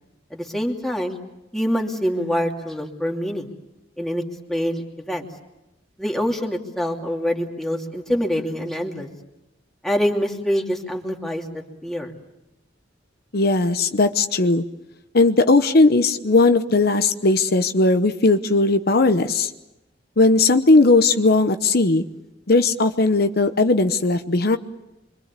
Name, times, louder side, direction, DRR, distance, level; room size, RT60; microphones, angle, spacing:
voice 1, 0.3-1.2 1.5-3.5 4.0-4.2 4.5-5.2 6.0-9.1 9.8-11.4 11.8-12.1, equal, ahead, 0 dB, 2.7 m, -25 dB
voice 2, 13.3-14.6 15.1-19.5 20.2-22.0 22.5-24.6, left 3 dB, 55° left, 9 dB, 1.0 m, -17 dB
26.0 x 24.0 x 8.3 m, 0.94 s
head